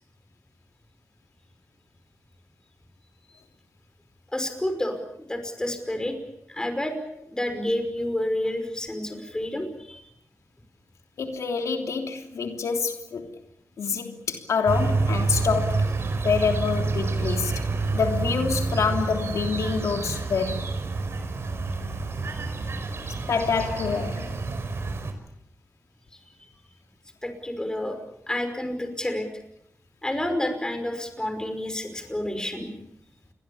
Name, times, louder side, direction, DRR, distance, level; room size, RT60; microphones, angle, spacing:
voice 1, 4.3-5.0 5.3-6.2 6.5-7.0 7.3-10.0 27.2-28.0 28.3-29.3 30.0-32.7, left 1 dB, 15° left, 5.5 m, -29 dB
voice 2, 11.2-13.3 13.8-15.9 16.2-17.6 17.9-20.7 23.3-24.4, left 5 dB, 90° left, 3.2 m, -26 dB
sound 1, 14.7-25.1, right 3 dB, 55° right, 5.4 m, -28 dB
29.0 x 22.5 x 7.2 m
wide cardioid pair, 105°, 5 cm